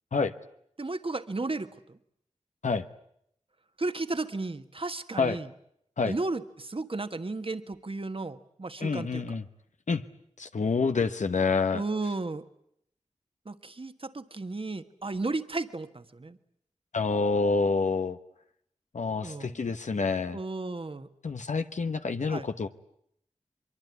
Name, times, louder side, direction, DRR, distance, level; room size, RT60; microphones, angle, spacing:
voice 1, 0.8-2.0 3.8-5.5 6.0-9.2 11.7-12.4 13.4-16.4 19.2-19.7 20.3-21.1 22.3-22.5, right 3 dB, 50° right, 9 dB, 1.6 m, -34 dB
voice 2, 8.8-9.4 9.9-10.0 10.4-11.8 16.9-18.2 18.9-20.4 21.2-22.7, left 4 dB, 80° left, 8 dB, 1.1 m, -27 dB
23.5 x 23.5 x 9.6 m, 0.72 s
cardioid pair, 45°, 12 cm